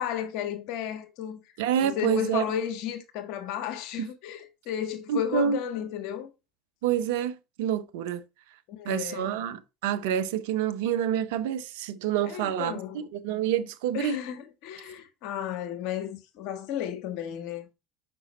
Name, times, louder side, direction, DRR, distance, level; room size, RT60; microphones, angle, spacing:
voice 1, 0.0-1.4 1.8-6.3 8.7-9.4 12.3-13.1 13.9-17.6, left 10 dB, 60° left, 1.3 m, -33 dB
voice 2, 1.6-2.4 4.0-4.1 5.1-5.6 6.8-8.2 8.8-14.2, right 9 dB, 70° right, 0.7 m, -28 dB
6.1 x 5.5 x 4.1 m
hypercardioid pair, 75°, 0 cm